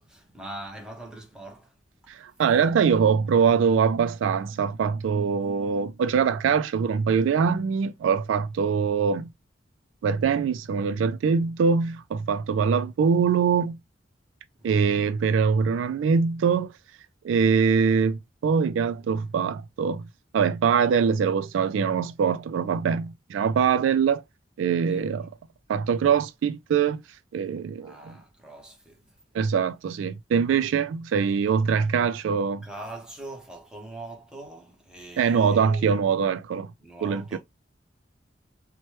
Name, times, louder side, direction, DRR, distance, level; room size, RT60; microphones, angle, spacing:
voice 1, 0.0-1.7 14.6-15.2 24.8-25.3 27.8-29.1 32.6-36.0 36.8-37.4, right 2 dB, 5° right, 0.8 m, -42 dB
voice 2, 2.1-9.3 10.0-13.8 14.6-16.7 17.2-20.1 20.3-24.2 24.6-25.3 25.7-27.0 27.3-28.2 29.3-32.6 35.2-36.7 37.0-37.4, right 6 dB, 90° right, 0.3 m, -23 dB
3.0 x 2.1 x 3.0 m
head